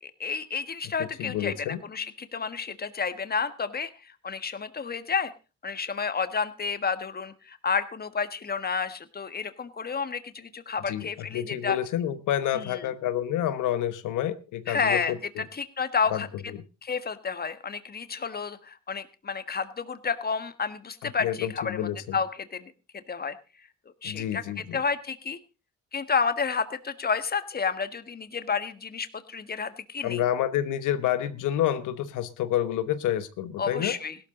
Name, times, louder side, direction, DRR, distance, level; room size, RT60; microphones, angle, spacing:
voice 1, 0.0-5.3 5.6-11.8 12.5-12.9 14.7-16.3 16.8-23.3 24.0-25.4 25.9-30.2 33.6-34.2, left 5 dB, 30° left, 1.5 m, -30 dB
voice 2, 1.2-1.8 10.9-11.1 11.3-15.4 16.1-16.2 21.2-22.0 24.0-24.8 30.0-33.9, left 11 dB, 85° left, 1.2 m, -28 dB
17.0 x 12.5 x 3.8 m
cardioid pair, 90°, 30 cm